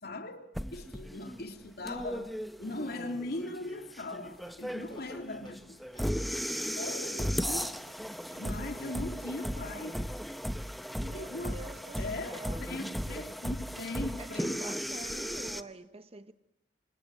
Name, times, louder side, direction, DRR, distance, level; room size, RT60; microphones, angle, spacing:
voice 1, 0.0-2.3 2.6-5.8 6.6-8.0 8.4-10.0 11.1-11.6 12.0-14.6, left 2 dB, 60° left, 3.1 m, -39 dB
sound 1, 0.5-15.6, equal, ahead, 1.0 m, -36 dB
Walk footsteps, 3.9-9.1, left 2 dB, 25° left, 5.4 m, -61 dB
voice 2, 11.0-12.7 14.1-16.3, right 2 dB, 35° right, 1.1 m, -47 dB
28.0 x 27.0 x 7.7 m
head